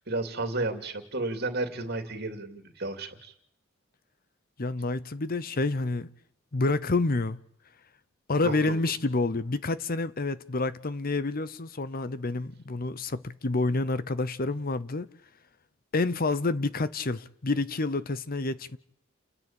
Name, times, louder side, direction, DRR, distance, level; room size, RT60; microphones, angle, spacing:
voice 1, 0.1-3.3 8.4-8.7, right 2 dB, 55° right, 2.9 m, -32 dB
voice 2, 4.6-6.1 6.5-7.4 8.3-15.1 15.9-18.8, left 3 dB, 45° left, 0.8 m, -28 dB
30.0 x 10.5 x 8.9 m
head